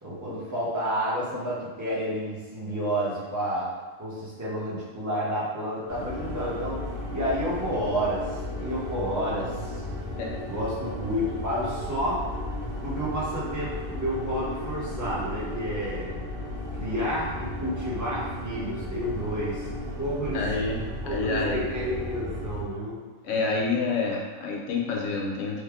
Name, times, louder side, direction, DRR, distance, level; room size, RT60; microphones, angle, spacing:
voice 1, 0.0-3.7 4.0-6.8 7.1-9.8 10.5-12.2 12.8-16.2 16.7-19.7 20.0-20.4 21.0-23.0, equal, 15° right, -8 dB, 0.7 m, -30 dB
sound 1, 5.9-22.6, left 1 dB, 50° right, 1.5 m, -35 dB
voice 2, 20.3-20.8 21.1-21.6 23.2-25.6, left 4 dB, 70° left, -1 dB, 0.9 m, -28 dB
3.3 x 2.1 x 3.5 m, 1.4 s
omnidirectional pair, 1.4 m